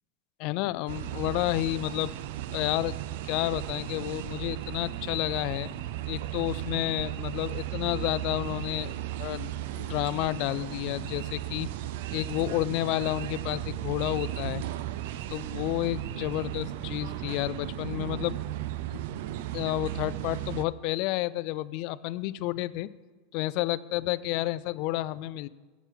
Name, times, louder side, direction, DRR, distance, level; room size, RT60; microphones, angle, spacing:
voice 1, 0.4-2.1 2.5-3.0 3.2-5.7 6.1-8.9 9.2-11.7 12.1-14.6 15.3-18.4 18.9-19.0 19.5-22.9 23.3-25.5, left 17 dB, 55° left, 18 dB, 0.3 m, -30 dB
sound 1, 0.9-20.6, right 13 dB, 70° right, 0.4 m, -35 dB
8.1 x 6.0 x 6.0 m, 1.3 s
supercardioid pair, 140°, 0 cm